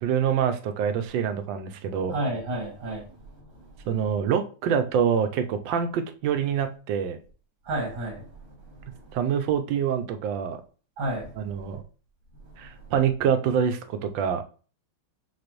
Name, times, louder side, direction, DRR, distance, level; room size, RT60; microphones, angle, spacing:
voice 1, 0.0-2.2 3.9-7.2 9.1-10.6 11.4-11.8 12.6-14.4, right 8 dB, 90° right, 1.3 m, -26 dB
voice 2, 2.1-3.0 7.7-8.2 11.0-11.3, right 1 dB, 70° right, 2.1 m, -30 dB
5.9 x 2.7 x 2.9 m
omnidirectional pair, 2.0 m